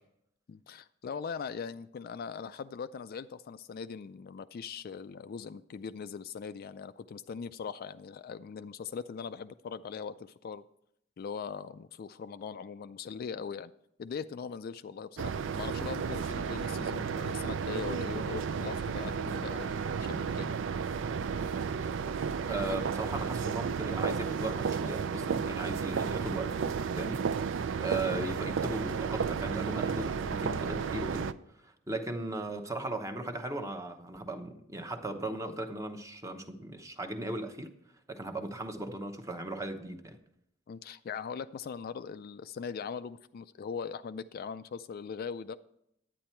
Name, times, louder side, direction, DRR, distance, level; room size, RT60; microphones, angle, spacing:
voice 1, 0.5-10.6 11.2-13.7 14.0-20.5 22.6-22.8 40.7-45.6, left 6 dB, 50° left, 12 dB, 0.3 m, -40 dB
sound 1, 15.2-31.3, right 6 dB, 70° right, 0.4 m, -33 dB
voice 2, 22.5-26.6 27.0-27.3 27.8-31.3 31.6-37.7 38.1-40.2, right 2 dB, 15° right, 6 dB, 0.9 m, -37 dB
10.5 x 9.1 x 4.4 m, 0.77 s
head